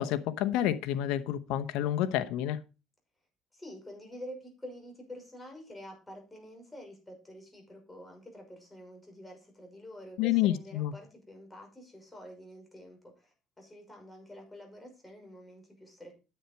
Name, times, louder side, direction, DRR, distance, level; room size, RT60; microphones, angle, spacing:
voice 1, 0.0-2.6 10.2-10.9, left 12 dB, 85° left, 0.9 m, -29 dB
voice 2, 3.5-16.1, equal, 15° left, 5.9 m, -48 dB
10.0 x 7.9 x 4.5 m
cardioid pair, 90°, 0 cm